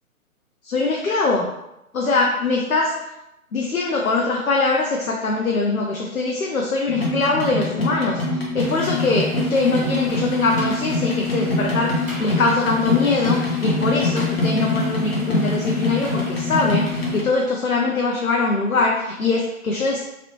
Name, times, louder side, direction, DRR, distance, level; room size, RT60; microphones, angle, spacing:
voice 1, 0.6-1.5 1.9-2.9 3.5-20.0, left 3 dB, 70° left, -1 dB, 0.6 m, -22 dB
sound 1, 6.9-17.2, left 2 dB, 45° left, 0.8 m, -24 dB
sound 2, 8.6-17.2, right 1 dB, 60° right, 1.0 m, -39 dB
3.1 x 2.7 x 2.8 m, 0.88 s
figure-of-eight pair, 135°, 43 cm